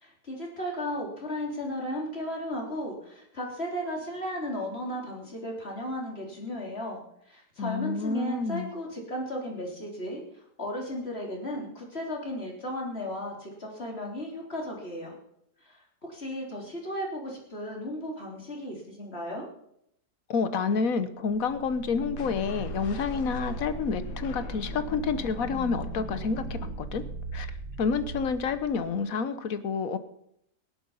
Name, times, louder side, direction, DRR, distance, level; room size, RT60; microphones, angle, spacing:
voice 1, 0.0-15.2 15.6-19.5, equal, 40° left, 0 dB, 3.7 m, -35 dB
voice 2, 7.6-8.7 20.3-27.0 27.3-27.5 27.8-30.0, left 5 dB, 60° left, 12 dB, 1.4 m, -29 dB
sound 1, 21.3-29.0, right 3 dB, 85° right, 2.0 m, -38 dB
sound 2, 22.2-27.3, left 5 dB, 80° left, 1.9 m, -42 dB
16.5 x 11.5 x 5.5 m, 0.75 s
omnidirectional pair, 1.7 m